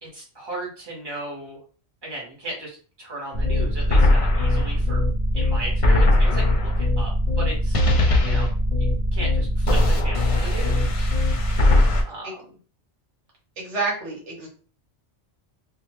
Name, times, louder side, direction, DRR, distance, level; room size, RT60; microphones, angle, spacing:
voice 1, 0.0-1.6 2.0-5.0 5.3-7.8 8.2-8.5 8.8-11.1 12.1-12.6, right 2 dB, 20° right, -4 dB, 1.2 m, -36 dB
sound 1, 3.3-12.0, left 1 dB, 45° left, 0.4 m, -20 dB
voice 2, 13.6-14.5, right 3 dB, 80° right, -2 dB, 1.4 m, -28 dB
2.8 x 2.2 x 3.1 m, 0.39 s
omnidirectional pair, 1.2 m